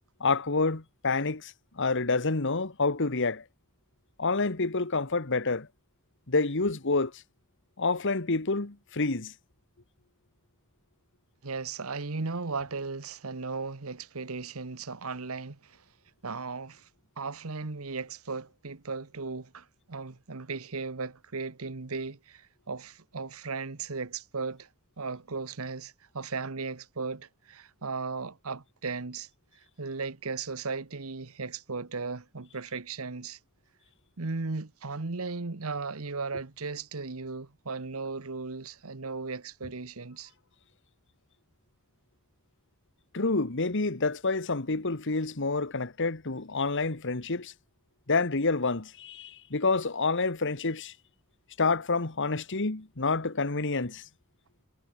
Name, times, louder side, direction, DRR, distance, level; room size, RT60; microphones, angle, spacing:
voice 1, 0.2-3.4 4.2-5.7 6.3-7.1 7.8-9.3 43.1-47.5 48.1-50.9 51.6-54.0, left 3 dB, 60° left, 1.6 m, -28 dB
voice 2, 11.4-15.8 16.2-16.9 17.2-24.7 25.0-29.3 29.8-33.4 34.2-40.3, right 4 dB, 75° right, 1.2 m, -36 dB
head